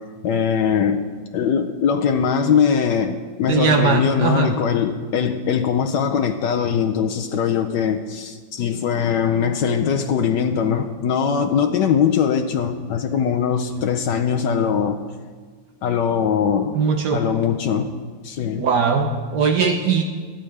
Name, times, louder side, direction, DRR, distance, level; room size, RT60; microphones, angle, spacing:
voice 1, 0.2-1.0 1.3-15.0 15.8-16.8 17.1-17.9 18.2-18.7, left 7 dB, 75° left, 5 dB, 1.3 m, -21 dB
voice 2, 3.5-4.5 16.7-17.2 18.6-20.0, right 5 dB, 70° right, 4 dB, 1.3 m, -19 dB
23.0 x 9.0 x 3.3 m, 1.5 s
omnidirectional pair, 2.0 m